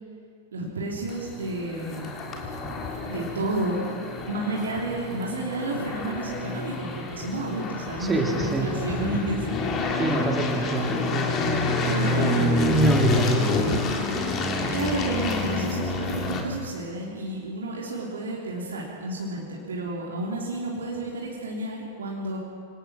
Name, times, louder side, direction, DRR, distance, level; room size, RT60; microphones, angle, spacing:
voice 1, 0.5-2.1 3.0-3.8 4.2-9.8 11.8-12.6 14.7-22.4, right 2 dB, 70° right, -3 dB, 3.5 m, -31 dB
sound 1, 1.1-16.4, left 2 dB, 30° left, 3.5 m, -28 dB
voice 2, 8.0-8.7 10.0-12.0 12.7-13.7, right 2 dB, 15° right, 0 dB, 3.7 m, -26 dB
26.0 x 18.5 x 6.2 m, 2.3 s
figure-of-eight pair, 90°, 0 cm